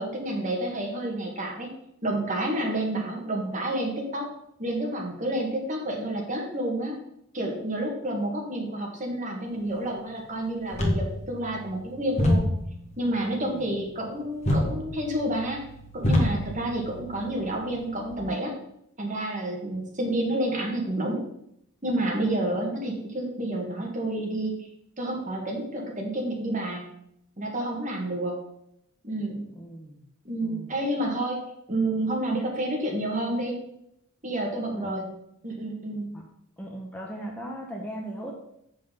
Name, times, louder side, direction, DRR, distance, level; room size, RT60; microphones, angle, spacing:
voice 1, 0.0-1.7 2.0-4.3 4.6-7.0 7.3-12.4 13.0-15.6 15.9-18.5 19.0-21.2 21.8-24.6 25.0-26.8 27.4-28.3 29.0-29.5 30.3-31.4 31.7-33.5 34.2-35.1 35.4-36.1, right 1 dB, 35° right, 0 dB, 1.7 m, -29 dB
sound 1, 10.7-18.1, left 1 dB, 30° left, 1.4 m, -29 dB
voice 2, 29.5-30.0 30.4-30.7 34.7-35.1 36.1-36.2 36.6-38.3, right 1 dB, 5° left, -1 dB, 0.9 m, -38 dB
7.6 x 5.6 x 5.2 m, 0.76 s
head